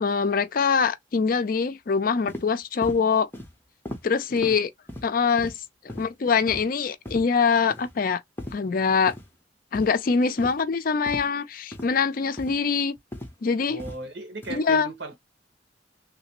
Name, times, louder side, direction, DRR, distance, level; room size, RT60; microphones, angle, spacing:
voice 1, 0.0-3.3 4.0-4.7 5.0-5.5 5.8-8.2 8.5-9.1 9.7-13.0 13.4-13.8 14.5-14.9, left 5 dB, 50° left, 0.4 m, -23 dB
sound 1, 2.3-2.4 2.8-3.0 3.3-3.5 3.8-4.0 4.4-4.5 4.9-5.1 5.4-5.5 5.9-6.1 6.5-6.6 7.0-7.2 7.7-7.9 8.4-8.5 9.1-9.3 9.7-9.9 10.4-10.6 11.1-11.2 11.7-11.9 12.4-12.6 13.1-13.3 13.8-14.0 14.4-14.6, equal, 10° left, 0.9 m, -36 dB
voice 2, 13.7-15.2, right 2 dB, 70° right, 1.6 m, -37 dB
3.2 x 3.0 x 2.9 m
head